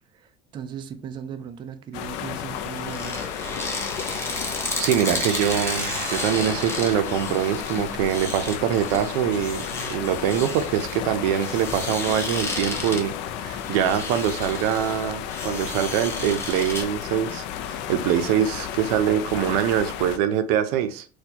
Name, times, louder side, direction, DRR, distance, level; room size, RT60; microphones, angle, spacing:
voice 1, 0.1-3.3 4.4-4.6, right 8 dB, 25° right, 0.3 m, -38 dB
sound 1, 1.9-20.2, left 9 dB, 65° left, 0.4 m, -33 dB
sound 2, 2.5-16.8, left 2 dB, 10° left, 0.7 m, -33 dB
sound 3, 4.7-7.7, right 4 dB, 70° right, 1.2 m, -36 dB
voice 2, 4.8-13.1 13.4-21.1, right 10 dB, 85° right, 0.5 m, -24 dB
4.2 x 2.2 x 2.7 m
cardioid pair, 145°, 20 cm